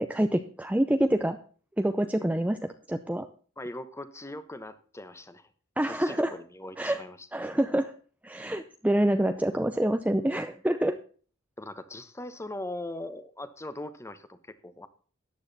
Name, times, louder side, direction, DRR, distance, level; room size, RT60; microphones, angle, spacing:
voice 1, 0.0-1.4 1.8-3.3 5.8-6.3 6.8-7.0 7.3-7.9 8.2-11.0, right 1 dB, 5° right, 8 dB, 0.6 m, -26 dB
voice 2, 3.6-5.5 5.9-7.3 11.6-14.4 14.6-14.9, left 1 dB, 15° left, 12 dB, 1.0 m, -40 dB
13.5 x 9.5 x 4.1 m, 0.42 s
head